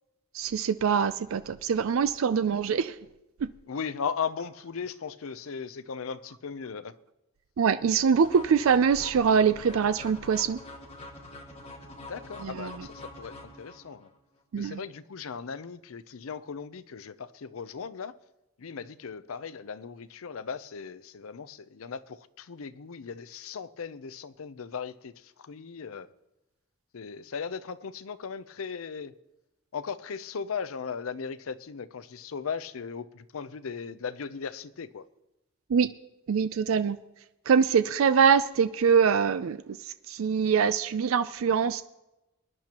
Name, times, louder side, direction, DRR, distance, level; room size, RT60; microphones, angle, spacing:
voice 1, 0.3-2.9 3.4-3.5 7.6-10.6 12.4-12.9 14.5-14.8 35.7-35.9 36.3-37.0 37.5-39.8 40.1-41.8, right 6 dB, 75° right, 0.4 m, -24 dB
voice 2, 3.7-6.9 12.0-14.1 14.6-18.1 18.6-26.1 26.9-29.1 29.7-35.0, left 6 dB, 90° left, 0.6 m, -37 dB
sound 1, 8.1-14.1, left 2 dB, 30° left, 1.9 m, -45 dB
22.0 x 10.5 x 2.9 m
head